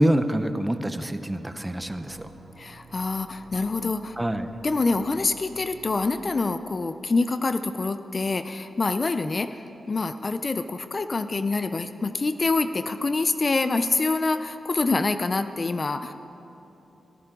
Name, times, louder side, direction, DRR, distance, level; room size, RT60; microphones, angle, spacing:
voice 1, 0.0-2.3 4.2-4.5, right 1 dB, 10° right, 9 dB, 0.6 m, -25 dB
sound 1, 1.7-5.8, right 4 dB, 60° right, 2.7 m, -51 dB
voice 2, 2.6-4.2 4.6-9.6 9.9-16.1, left 3 dB, 30° left, 10 dB, 0.4 m, -26 dB
24.5 x 14.0 x 3.8 m, 3.0 s
wide cardioid pair, 140°, 0 cm